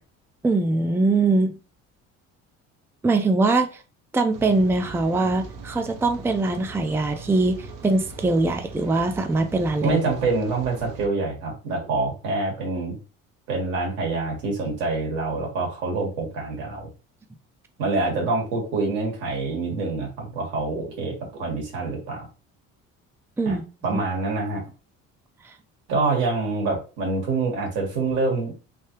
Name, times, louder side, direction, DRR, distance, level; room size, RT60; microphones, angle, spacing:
voice 1, 0.4-1.6 3.0-3.8 4.1-10.0 23.4-24.0 25.4-25.5, right 3 dB, 5° right, 0.4 m, -22 dB
Rain, 4.3-11.1, right 3 dB, 70° right, 0.8 m, -40 dB
voice 2, 9.8-13.0 13.5-16.9 17.8-22.3 23.4-23.6 23.8-24.6 25.9-28.5, right 3 dB, 90° right, 1.7 m, -26 dB
3.4 x 2.7 x 3.0 m
supercardioid pair, 85°, 33 cm